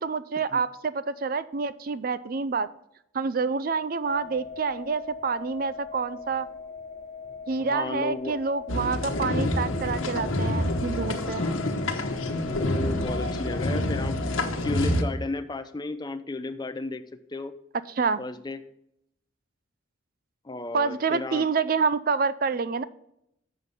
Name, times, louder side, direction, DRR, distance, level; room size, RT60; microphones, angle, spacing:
voice 1, 0.0-2.7 3.1-6.5 7.5-11.4 18.0-18.2 20.7-22.8, right 5 dB, 45° right, 16 dB, 0.4 m, -27 dB
sound 1, 4.1-14.5, left 4 dB, 15° right, 1.1 m, -41 dB
voice 2, 7.6-8.4 11.2-11.6 12.5-14.2 14.6-17.0 17.3-17.5 18.2-18.6 20.4-21.5, left 2 dB, 20° left, 10 dB, 0.5 m, -33 dB
sound 2, 8.7-15.0, left 1 dB, 85° left, 1.2 m, -27 dB
7.8 x 6.6 x 5.5 m, 0.78 s
head